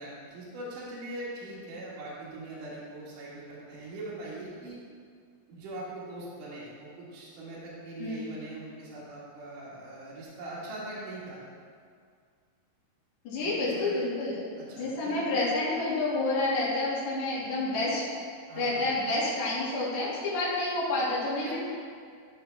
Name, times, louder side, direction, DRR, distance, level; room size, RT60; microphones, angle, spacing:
voice 1, 0.0-4.8 5.5-11.4 13.4-13.9 14.6-15.3 18.5-18.9 21.4-21.5, right 1 dB, 60° right, -7 dB, 2.9 m, -41 dB
voice 2, 13.2-14.4 14.8-18.0 18.6-21.5, left 2 dB, 55° left, -9 dB, 3.2 m, -29 dB
13.5 x 5.6 x 3.4 m, 2.2 s
omnidirectional pair, 4.7 m